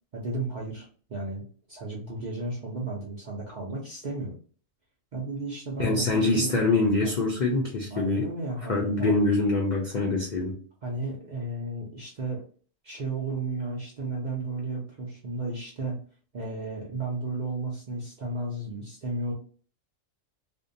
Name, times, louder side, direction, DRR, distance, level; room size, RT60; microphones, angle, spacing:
voice 1, 0.1-4.3 5.1-6.6 7.0-7.1 7.9-9.2 10.8-12.4 12.8-16.0 16.3-19.3, right 2 dB, 55° right, -3 dB, 0.5 m, -33 dB
voice 2, 5.8-8.3 8.7-10.6, left 3 dB, 80° left, -2 dB, 0.4 m, -24 dB
2.6 x 2.1 x 2.5 m, 0.42 s
omnidirectional pair, 1.4 m